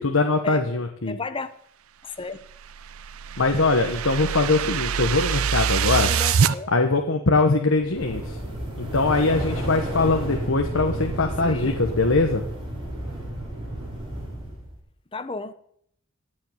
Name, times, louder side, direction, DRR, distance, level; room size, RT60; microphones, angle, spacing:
voice 1, 0.0-1.2 3.4-6.1 6.7-8.4 8.8-12.4, left 3 dB, 75° left, 1.2 m, -22 dB
voice 2, 1.1-1.5 2.0-2.4 6.0-6.7 9.4-9.5 11.4-11.8 15.1-15.5, left 2 dB, 25° left, 0.8 m, -32 dB
sound 1, 2.5-6.5, right 7 dB, 80° right, 0.6 m, -24 dB
sound 2, 7.8-14.7, right 1 dB, 25° right, 5.2 m, -31 dB
16.0 x 5.6 x 9.6 m
head